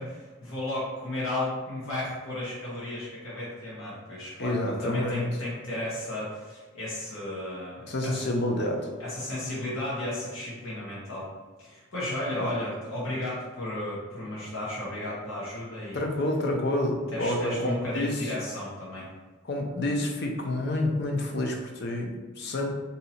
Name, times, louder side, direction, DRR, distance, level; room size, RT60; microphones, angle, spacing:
voice 1, 0.0-8.3 9.0-11.3 11.6-16.0 17.1-19.1, left 1 dB, 85° left, -7 dB, 1.0 m, -34 dB
voice 2, 4.4-5.3 7.9-8.9 12.4-12.5 15.9-18.2 19.4-22.7, left 1 dB, 50° left, 2 dB, 0.5 m, -28 dB
2.7 x 2.7 x 4.2 m, 1.3 s
head